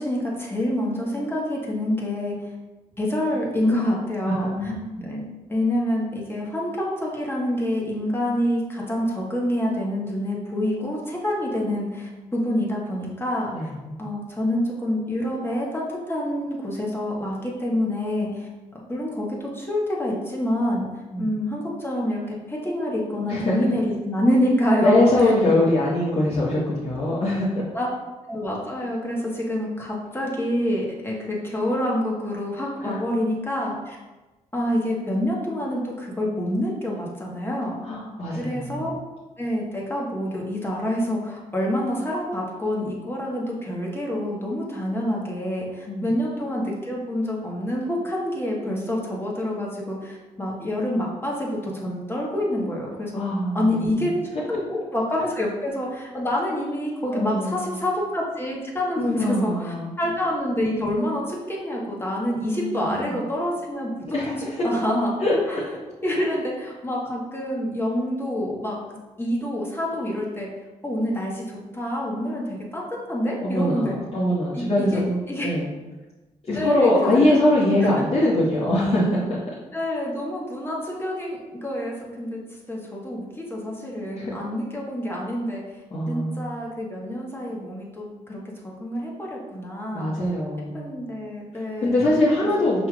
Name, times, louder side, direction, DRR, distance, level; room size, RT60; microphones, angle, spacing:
voice 1, 0.0-2.4 3.0-4.7 5.0-13.7 14.0-20.9 21.2-25.3 27.7-27.9 28.3-34.0 34.5-37.8 38.4-38.9 39.4-53.2 53.5-63.9 64.3-64.4 64.6-65.2 65.5-65.6 66.0-68.8 69.2-70.5 70.8-73.9 74.5-75.0 75.3-75.5 76.5-77.5 78.0-78.1 79.7-82.4 82.7-85.6 86.1-90.1 90.7-92.7, left 1 dB, 15° left, -3 dB, 1.3 m, -27 dB
voice 2, 4.4-5.0 13.5-14.0 21.1-21.3 23.3-23.5 24.8-27.5 32.8-33.0 37.8-38.9 45.9-46.1 53.1-53.8 57.1-57.8 59.0-59.9 62.6-63.2 64.1-64.5 65.2-65.3 66.1-66.2 73.4-75.6 76.5-79.4 84.1-84.3 85.9-86.5 89.9-90.9 91.8-92.9, left 1 dB, 40° left, -9 dB, 1.3 m, -23 dB
5.6 x 3.0 x 2.4 m, 1.2 s
supercardioid pair, 50°, 15 cm